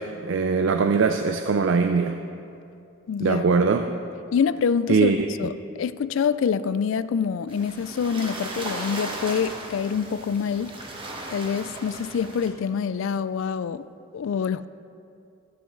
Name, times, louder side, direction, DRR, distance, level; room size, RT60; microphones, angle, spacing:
voice 1, 0.0-2.2 3.2-3.9 4.9-5.3, right 5 dB, 65° right, 7 dB, 0.4 m, -21 dB
voice 2, 3.1-3.4 4.3-5.1 5.4-10.8 11.3-13.9 14.1-14.7, left 6 dB, 65° left, 16 dB, 0.3 m, -26 dB
sound 1, 7.5-12.5, right 2 dB, 25° right, 1.1 m, -36 dB
14.5 x 8.5 x 3.9 m, 2.6 s
head